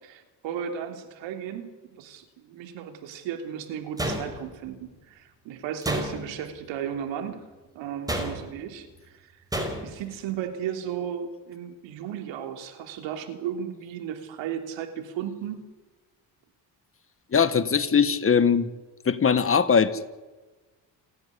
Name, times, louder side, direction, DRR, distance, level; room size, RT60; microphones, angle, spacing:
voice 1, 0.0-7.4 7.7-9.4 9.8-15.6, right 9 dB, 85° right, 6 dB, 3.4 m, -35 dB
sound 1, 4.0-4.7 5.8-6.5 8.1-8.6 9.5-10.0, right 1 dB, 10° right, 5.1 m, -30 dB
voice 2, 17.3-18.6 19.0-20.1, left 6 dB, 30° left, 13 dB, 1.6 m, -21 dB
29.0 x 11.0 x 10.0 m, 1.2 s
cardioid pair, 105°, 44 cm